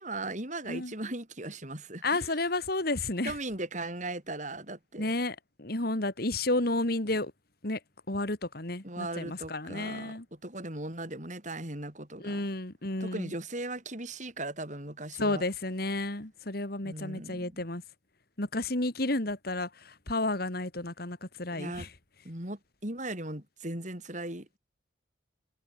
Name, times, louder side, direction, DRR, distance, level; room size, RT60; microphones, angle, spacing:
voice 1, 0.0-2.3 3.3-5.1 8.8-12.4 13.0-15.4 16.8-17.6 21.5-21.9 22.3-24.6, right 2 dB, 40° right, 5.2 m, -38 dB
voice 2, 2.0-3.3 5.0-7.3 7.6-7.8 8.1-10.3 12.2-13.3 15.2-17.8 18.4-21.9, left 2 dB, 55° left, 2.5 m, -31 dB
head